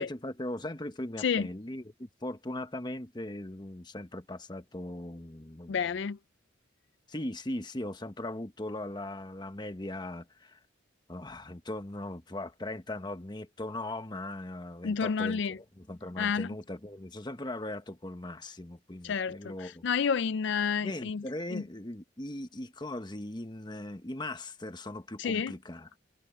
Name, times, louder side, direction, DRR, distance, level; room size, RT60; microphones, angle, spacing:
voice 1, 0.0-5.8 7.1-10.6 11.1-19.8 20.8-26.0, left 1 dB, 20° left, 1.1 m, -39 dB
voice 2, 5.7-6.2 14.8-15.6 16.2-16.5 19.0-21.2 21.5-21.6 25.2-25.5, left 6 dB, 60° left, 0.4 m, -30 dB
head